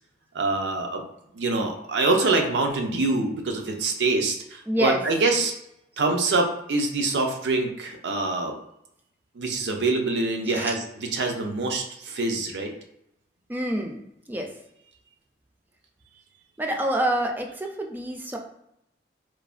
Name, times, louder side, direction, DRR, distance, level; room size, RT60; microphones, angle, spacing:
voice 1, 0.3-1.0 1.3-5.5 6.0-8.5 9.4-10.8 11.1-12.7, right 3 dB, 75° right, 3 dB, 0.5 m, -25 dB
voice 2, 4.7-5.0 10.5-10.8 13.5-14.6 16.6-18.4, right 1 dB, 10° right, 2 dB, 0.3 m, -27 dB
3.2 x 2.1 x 2.4 m, 0.78 s
head